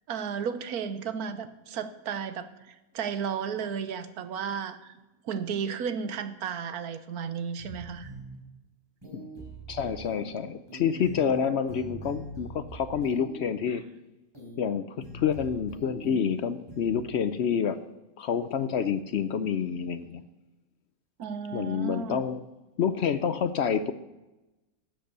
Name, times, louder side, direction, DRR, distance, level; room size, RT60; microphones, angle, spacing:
voice 1, 0.1-5.0 5.2-8.1 21.2-22.2, right 7 dB, 85° right, 11 dB, 1.4 m, -34 dB
sound 1, 7.6-8.4 9.0-10.4 10.7-13.4 14.3-14.7 15.0-16.4 16.7-17.0, right 2 dB, 15° right, 4.0 m, -43 dB
voice 2, 9.7-13.8 14.6-17.8 18.2-20.2 21.5-22.4 22.8-23.9, left 7 dB, 60° left, 13 dB, 0.7 m, -28 dB
13.0 x 8.0 x 6.7 m, 1.0 s
omnidirectional pair, 1.5 m